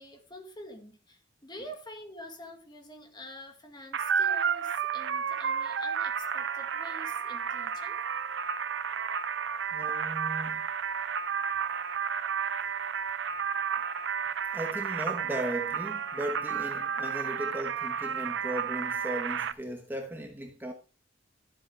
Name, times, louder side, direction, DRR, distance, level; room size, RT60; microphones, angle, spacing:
voice 1, 0.0-8.0 13.7-13.9, left 1 dB, 25° left, 2.0 m, -47 dB
sound 1, 3.9-19.5, right 7 dB, 65° right, 0.6 m, -32 dB
voice 2, 9.7-10.7 14.5-20.7, right 1 dB, 10° right, 1.2 m, -37 dB
13.0 x 7.8 x 3.4 m
head